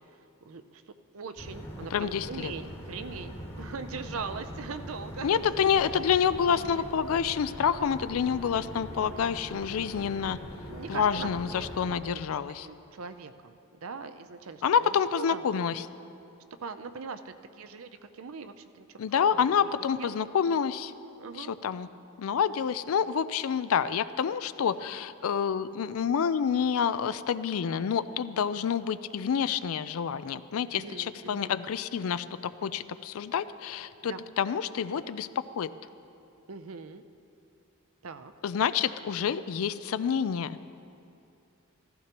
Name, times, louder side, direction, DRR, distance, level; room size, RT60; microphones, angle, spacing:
voice 1, 0.4-0.8 1.1-5.9 6.5-6.9 8.9-9.6 10.7-11.7 12.0-12.2 12.6-15.4 16.6-19.7 20.0-20.1 21.2-21.5 30.7-31.6 34.1-34.2 36.5-37.0 38.0-38.3, right 5 dB, 70° right, 10 dB, 0.5 m, -41 dB
sound 1, 1.4-11.9, equal, 30° left, 1.5 m, -42 dB
voice 2, 1.9-2.5 5.2-10.4 10.9-12.7 14.6-15.8 19.0-20.9 21.4-21.9 22.2-32.3 32.6-35.7 38.4-40.6, left 7 dB, 70° left, 14 dB, 0.4 m, -28 dB
15.0 x 14.5 x 3.0 m, 2.7 s
head